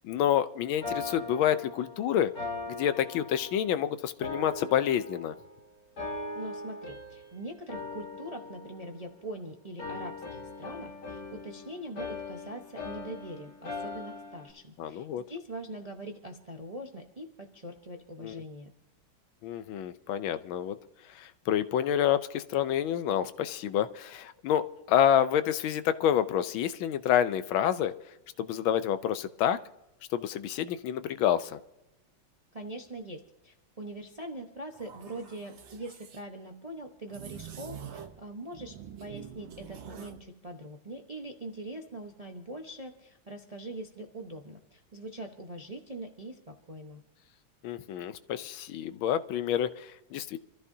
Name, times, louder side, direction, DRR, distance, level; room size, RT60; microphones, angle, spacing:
voice 1, 0.0-2.3 2.7-5.3 14.8-15.2 18.2-18.4 19.4-20.8 21.1-27.9 28.4-29.6 30.1-31.6 47.6-50.4, left 10 dB, 80° left, 13 dB, 1.4 m, -28 dB
sound 1, 0.8-3.8 4.2-5.5 6.0-7.4 7.7-9.4 9.8-14.5, left 3 dB, 50° left, 2.1 m, -40 dB
voice 2, 6.3-18.7 32.5-47.0, right 1 dB, 30° right, 3 dB, 0.6 m, -42 dB
sound 2, 34.7-36.2 37.1-38.2 38.5-40.2, right 8 dB, 70° right, 1.8 m, -46 dB
26.5 x 14.0 x 2.7 m, 0.90 s
omnidirectional pair, 2.2 m